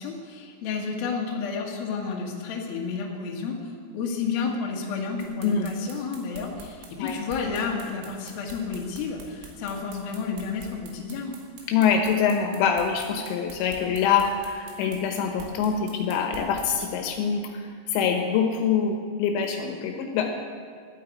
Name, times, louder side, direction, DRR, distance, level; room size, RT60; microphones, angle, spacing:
voice 1, 0.0-11.4, left 5 dB, 60° left, -1 dB, 3.0 m, -31 dB
sound 1, 5.2-16.9, right 4 dB, 75° right, 4.5 m, -45 dB
voice 2, 11.7-20.4, left 6 dB, 80° left, 4 dB, 3.5 m, -25 dB
12.5 x 9.4 x 8.3 m, 2.1 s
omnidirectional pair, 5.9 m